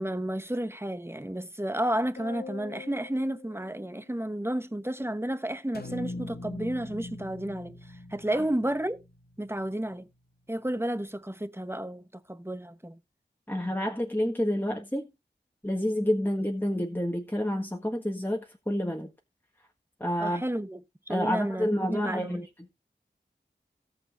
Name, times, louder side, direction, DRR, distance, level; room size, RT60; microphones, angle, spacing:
voice 1, 0.0-7.8 8.1-9.0 9.4-10.1 10.5-13.0 20.2-20.8 21.1-22.5, right 1 dB, 15° right, 1.0 m, -32 dB
sound 1, 2.2-4.8, left 5 dB, 80° left, 1.5 m, -45 dB
sound 2, 5.7-10.0, left 2 dB, 55° left, 1.4 m, -42 dB
voice 2, 13.5-15.1 15.6-19.1 20.0-20.4 21.1-22.4, equal, 10° left, 1.6 m, -29 dB
17.5 x 7.0 x 2.6 m
wide cardioid pair, 50°, 19 cm